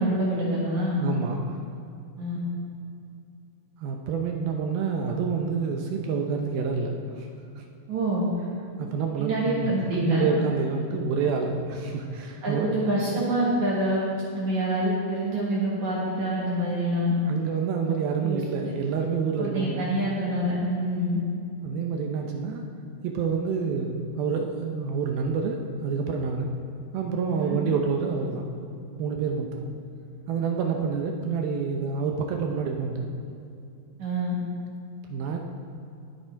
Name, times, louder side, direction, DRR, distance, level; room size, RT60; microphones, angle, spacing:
voice 1, 0.0-1.0 2.2-2.4 7.9-8.3 9.2-10.3 12.4-14.1 14.3-17.1 18.2-18.4 19.4-21.2 27.3-27.6 34.0-34.4, right 1 dB, 55° right, -6 dB, 2.3 m, -26 dB
voice 2, 1.0-1.6 3.8-7.3 7.6-7.7 8.8-12.8 17.3-20.0 21.6-22.6 23.0-26.5 26.9-28.5 29.0-29.7 30.3-33.2 35.1-35.4, right 5 dB, 80° right, 2 dB, 2.2 m, -28 dB
18.5 x 7.2 x 4.5 m, 2.5 s
omnidirectional pair, 5.2 m